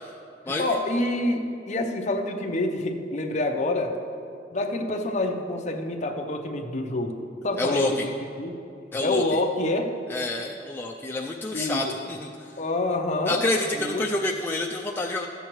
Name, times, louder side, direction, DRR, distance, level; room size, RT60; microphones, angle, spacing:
voice 1, 0.6-4.0 4.5-7.2 7.4-8.1 8.4-8.5 9.0-9.9 11.5-12.0 12.6-13.4 13.8-14.1, left 2 dB, 40° left, 3 dB, 0.7 m, -27 dB
voice 2, 7.6-8.1 8.9-9.2 10.1-12.5 13.3-15.3, left 2 dB, 10° left, -1 dB, 0.3 m, -28 dB
13.0 x 8.0 x 3.0 m, 2.5 s
head